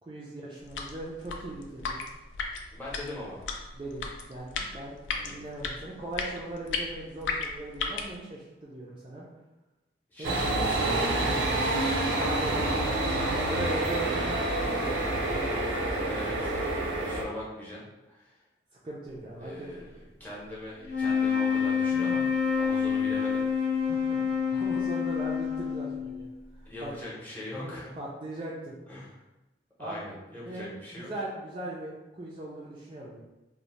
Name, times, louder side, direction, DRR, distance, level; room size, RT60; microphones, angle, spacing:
voice 1, 0.0-2.0 3.7-5.0 5.2-9.3 10.2-10.3 12.2-12.6 13.1-15.5 18.8-19.7 21.9-22.2 23.9-24.2 24.5-26.3 26.6-26.9 28.0-28.7 29.8-30.1 30.4-33.2, right 1 dB, 25° right, -5 dB, 0.3 m, -39 dB
sound 1, 0.6-8.2, left 4 dB, 85° left, 0.3 m, -36 dB
voice 2, 2.7-3.4 5.1-5.3 10.1-11.7 12.8-13.5 15.8-16.5 17.0-18.4 19.4-22.2 22.6-23.5 26.6-27.9 28.9-29.2 29.8-31.1, left 1 dB, 10° left, -7 dB, 0.7 m, -41 dB
sound 2, 10.2-17.2, right 2 dB, 90° right, 0.5 m, -28 dB
sound 3, 20.8-26.3, left 6 dB, 50° left, 0.7 m, -27 dB
2.6 x 2.0 x 3.0 m, 1.0 s
head